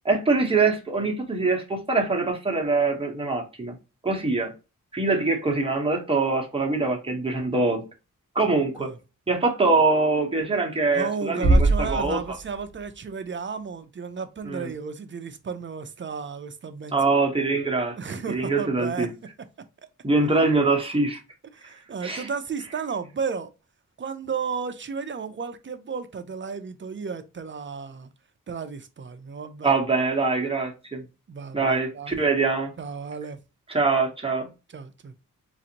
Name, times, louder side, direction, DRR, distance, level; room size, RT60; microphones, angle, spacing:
voice 1, 0.0-3.8 4.0-4.5 4.9-7.8 8.3-8.9 9.3-12.2 14.4-14.7 16.9-18.0 18.3-19.1 20.0-21.2 22.0-22.3 29.6-31.0 31.5-32.7 33.7-34.5, right 3 dB, 15° right, 0.9 m, -23 dB
voice 2, 10.9-17.0 18.0-19.1 21.5-23.5 24.0-28.1 28.5-29.8 31.3-32.2 32.8-33.4 34.7-35.1, right 5 dB, 35° right, 0.4 m, -33 dB
sound 1, 11.4-13.4, right 2 dB, 55° left, 1.2 m, -23 dB
4.0 x 2.5 x 2.8 m
wide cardioid pair, 130°, 32 cm